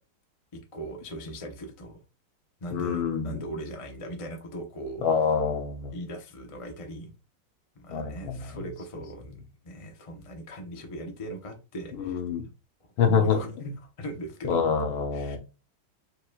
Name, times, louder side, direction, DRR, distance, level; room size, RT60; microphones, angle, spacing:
voice 1, 0.7-2.0 2.6-5.1 5.9-7.1 7.7-9.4 9.6-12.2 13.0-13.7 14.0-14.7 15.1-15.4, right 1 dB, 55° left, 0.3 m, -39 dB
voice 2, 2.7-3.4 5.0-5.9 7.9-8.7 11.9-12.5 13.0-13.4 14.4-15.4, left 6 dB, 85° left, 1.8 m, -26 dB
4.9 x 3.9 x 2.3 m
omnidirectional pair, 2.2 m